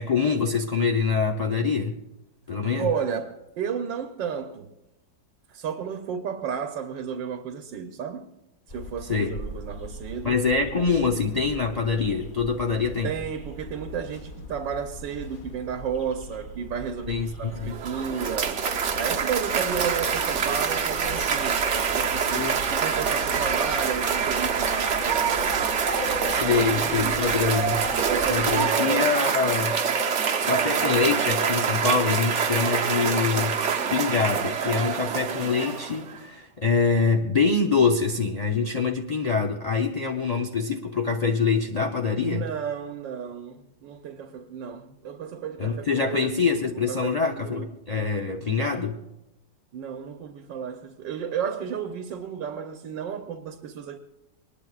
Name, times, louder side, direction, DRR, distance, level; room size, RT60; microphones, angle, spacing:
voice 1, 0.0-2.0 2.5-2.9 9.1-9.4 10.2-13.1 17.1-17.7 22.3-22.6 26.3-27.9 28.3-29.8 30.4-33.6 33.9-42.5 45.6-49.0, left 5 dB, 55° left, 0.4 m, -25 dB
voice 2, 2.8-4.7 5.5-8.3 8.7-10.4 13.0-18.7 18.9-25.6 25.8-27.4 28.1-29.3 30.1-30.2 42.2-46.6 46.9-47.7 49.7-54.0, right 7 dB, 85° right, 1.6 m, -33 dB
sound 1, 8.7-28.6, left 1 dB, 35° left, 1.0 m, -41 dB
Cheering / Applause, 17.5-36.2, right 6 dB, 50° right, 1.0 m, -25 dB
23.0 x 20.0 x 2.4 m
omnidirectional pair, 1.9 m